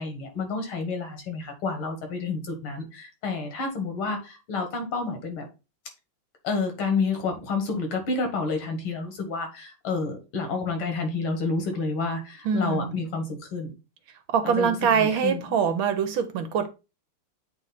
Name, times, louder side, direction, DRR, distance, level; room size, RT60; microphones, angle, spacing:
voice 1, 0.0-5.5 6.4-13.7 14.4-15.4, left 4 dB, 70° left, 2.3 m, -29 dB
voice 2, 12.4-12.9 14.3-16.7, right 7 dB, 70° right, 1.5 m, -24 dB
8.1 x 3.2 x 4.0 m
omnidirectional pair, 2.4 m